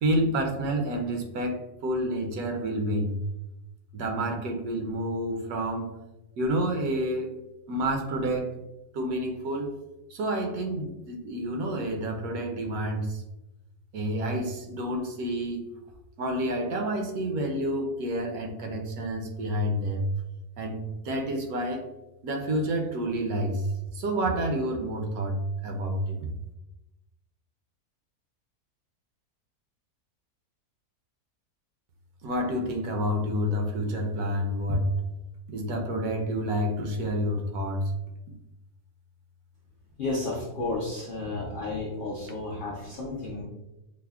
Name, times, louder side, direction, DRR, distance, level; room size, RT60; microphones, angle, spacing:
voice 1, 0.0-3.1 3.9-5.9 6.4-7.3 7.7-8.5 8.9-9.7 10.1-13.2 13.9-15.6 16.2-20.1 20.6-21.9 22.2-23.7 23.9-26.2 32.2-34.9 35.5-37.9, right 1 dB, 75° right, 3 dB, 1.1 m, -29 dB
voice 2, 40.0-43.4, left 2 dB, 70° left, -5 dB, 0.5 m, -32 dB
5.7 x 2.0 x 2.3 m, 0.97 s
omnidirectional pair, 1.6 m